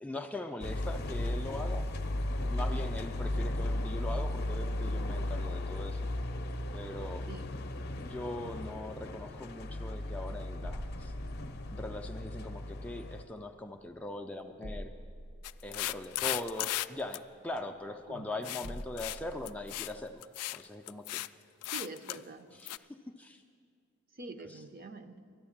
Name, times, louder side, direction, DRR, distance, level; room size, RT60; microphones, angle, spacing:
voice 1, 0.0-1.9 2.4-6.0 6.7-7.2 8.0-11.1 11.7-14.9 15.6-20.2 20.5-21.2 22.5-22.8 23.2-23.4 24.5-24.6, left 2 dB, 5° left, 4 dB, 0.4 m, -41 dB
sound 1, 0.6-13.2, left 1 dB, 45° left, 0.6 m, -35 dB
sound 2, 14.6-20.2, equal, 85° right, 1.0 m, -49 dB
sound 3, 15.4-16.9 17.1-17.2 18.4-18.7 19.0-19.2 19.4-19.9 20.2-20.6 20.9-21.3 21.6-22.2 22.7-22.8, left 16 dB, 90° left, 0.3 m, -35 dB
voice 2, 18.1-18.6 21.6-22.5 24.1-25.2, right 3 dB, 40° right, 9 dB, 0.6 m, -45 dB
12.5 x 10.5 x 7.2 m, 2.2 s
head